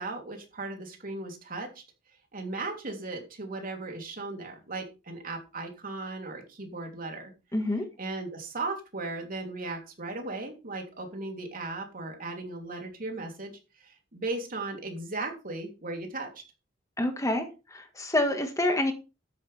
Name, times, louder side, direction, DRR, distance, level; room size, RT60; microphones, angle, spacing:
voice 1, 0.0-1.8 2.3-7.3 8.0-13.5 13.8-16.3, right 3 dB, 50° right, 3 dB, 3.2 m, -37 dB
voice 2, 7.5-7.9 17.0-18.9, left 1 dB, 15° left, 6 dB, 1.6 m, -27 dB
12.5 x 9.6 x 3.4 m, 0.29 s
head